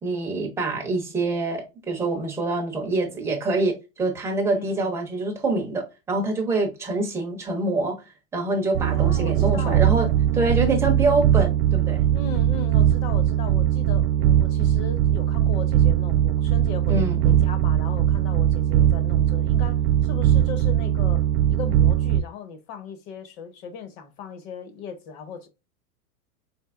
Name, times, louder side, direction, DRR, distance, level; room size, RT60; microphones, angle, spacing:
voice 1, 0.0-10.1 10.3-12.0 16.9-17.4, right 2 dB, 5° right, 0.5 m, -25 dB
voice 2, 4.5-4.9 8.8-9.9 10.2-10.8 12.1-25.5, left 6 dB, 45° left, 0.9 m, -38 dB
sound 1, 8.7-22.2, right 11 dB, 75° right, 0.5 m, -20 dB
4.4 x 2.7 x 2.4 m
supercardioid pair, 150°, 44 cm